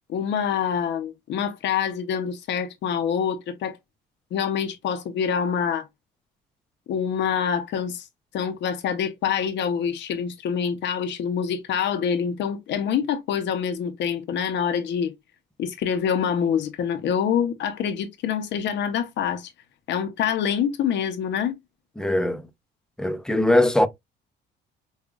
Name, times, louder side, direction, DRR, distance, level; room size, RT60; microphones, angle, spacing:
voice 1, 0.1-3.8 4.3-5.9 6.9-8.1 8.3-15.1 15.6-19.5 19.9-21.5, left 7 dB, 70° left, 0.7 m, -26 dB
voice 2, 22.0-22.4 23.0-23.9, left 1 dB, 5° left, 0.5 m, -20 dB
5.5 x 2.3 x 2.3 m
cardioid pair, 115°, 19 cm